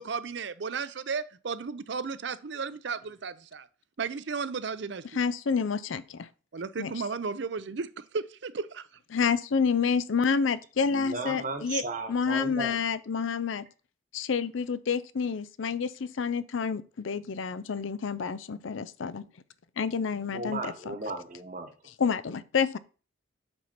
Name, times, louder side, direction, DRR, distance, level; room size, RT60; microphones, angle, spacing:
voice 1, 0.0-3.7 4.0-5.1 6.5-8.9, right 5 dB, 65° right, 0.5 m, -34 dB
voice 2, 5.1-6.3 6.8-6.9 9.1-11.8 12.1-13.7 14.1-19.3 19.8-20.9 22.0-22.8, left 5 dB, 85° left, 0.5 m, -29 dB
voice 3, 10.9-12.8 20.3-21.7, right 3 dB, 40° right, 1.1 m, -35 dB
7.8 x 4.2 x 5.9 m
head